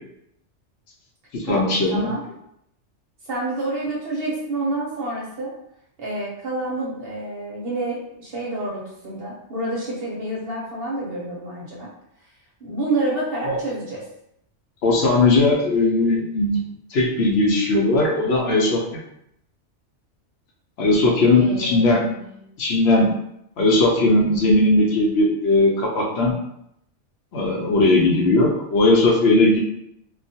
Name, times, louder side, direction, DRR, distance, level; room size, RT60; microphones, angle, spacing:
voice 1, 1.3-2.1 13.5-13.6 14.8-16.6 16.9-18.8 20.8-22.0 22.6-23.1 23.6-26.3 27.3-29.6, left 2 dB, 70° left, -1 dB, 0.8 m, -18 dB
voice 2, 1.9-2.2 3.3-5.5 6.0-11.9 12.6-14.0 21.3-22.3, right 2 dB, 60° right, -4 dB, 0.8 m, -28 dB
2.3 x 2.1 x 2.7 m, 0.76 s
omnidirectional pair, 1.2 m